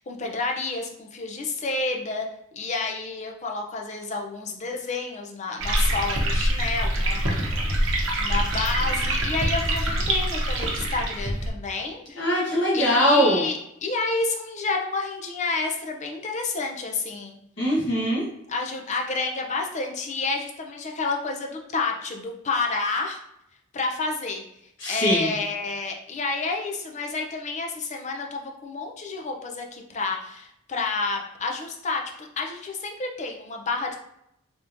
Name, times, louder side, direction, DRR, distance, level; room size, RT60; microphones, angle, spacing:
voice 1, 0.0-2.3 2.5-12.2 12.7-17.3 18.5-23.2 23.7-24.4 24.9-34.0, left 3 dB, 35° left, 1 dB, 0.5 m, -30 dB
sound 1, 5.6-11.5, right 1 dB, 65° right, 0.8 m, -25 dB
voice 2, 12.2-13.4 17.6-18.2 24.8-25.3, equal, 60° left, -7 dB, 1.2 m, -21 dB
3.5 x 2.9 x 2.5 m, 0.79 s
head